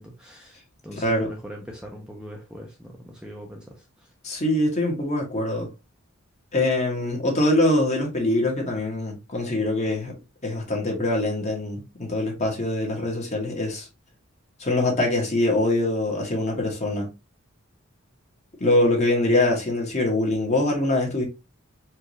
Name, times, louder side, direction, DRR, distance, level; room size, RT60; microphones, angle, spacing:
voice 1, 0.0-3.8, equal, 5° right, 0.7 m, -41 dB
voice 2, 1.0-1.3 4.2-5.7 6.5-10.1 10.4-13.9 14.6-17.1 18.6-21.2, left 1 dB, 35° left, 1.3 m, -23 dB
4.5 x 2.6 x 3.1 m
head